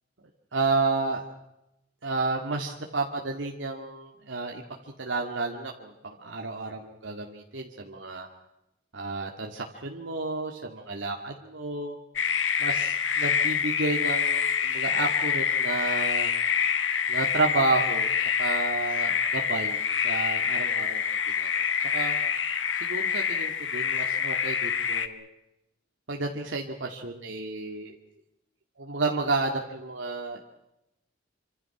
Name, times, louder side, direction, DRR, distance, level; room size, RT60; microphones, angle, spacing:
voice 1, 0.5-1.3 2.0-4.6 5.0-8.3 8.9-12.0 12.6-16.3 17.1-18.1 18.4-19.8 20.0-21.5 21.8-22.2 22.7-25.3 26.1-28.0 28.8-30.4, right 3 dB, 80° right, 1 dB, 2.1 m, -31 dB
sound 1, 12.2-25.1, left 7 dB, 90° left, 1.6 m, -26 dB
26.5 x 25.5 x 6.0 m, 0.88 s
head